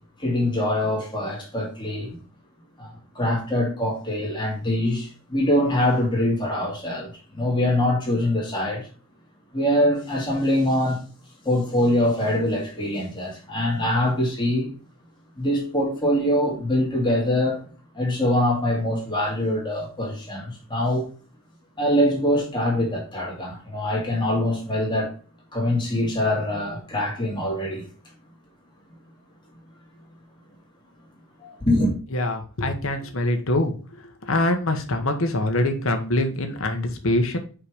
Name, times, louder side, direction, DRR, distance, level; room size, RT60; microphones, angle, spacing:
voice 1, 0.2-2.2 2.8-8.9 9.5-11.0 11.4-14.7 15.4-17.7 17.9-21.0 21.8-25.1 25.5-27.8 31.4-31.9, left 1 dB, 20° left, 2.2 m, -23 dB
voice 2, 32.1-33.7 34.2-37.4, left 1 dB, 70° left, 1.1 m, -24 dB
5.6 x 5.0 x 5.0 m
head